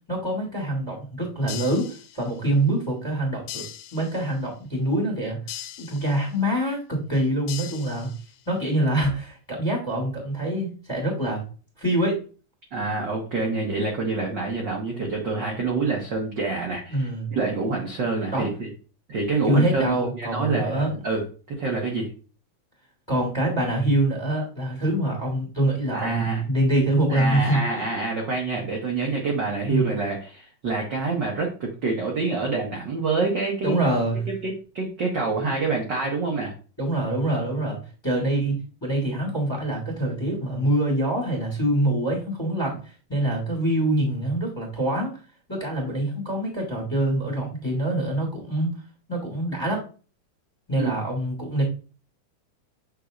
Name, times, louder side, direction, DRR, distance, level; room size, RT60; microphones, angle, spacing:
voice 1, 0.1-3.6 3.9-5.4 5.8-8.1 8.5-11.4 11.8-12.2 16.9-17.3 18.3-18.5 19.4-20.9 23.1-27.8 29.7-30.0 33.6-34.3 36.8-45.1 45.5-48.8 49.1-49.8 50.7-51.6, right 1 dB, 10° left, 1 dB, 2.0 m, -25 dB
sound 1, 1.5-2.5 3.5-4.5 5.5-6.5 7.5-8.5, left 12 dB, 85° left, 2.2 m, -40 dB
voice 2, 12.7-18.7 19.1-21.2 21.6-22.1 25.9-26.4 27.1-33.9 34.3-36.5 50.7-50.9, right 3 dB, 55° right, -1 dB, 1.2 m, -27 dB
7.7 x 5.3 x 2.5 m, 0.35 s
omnidirectional pair, 3.8 m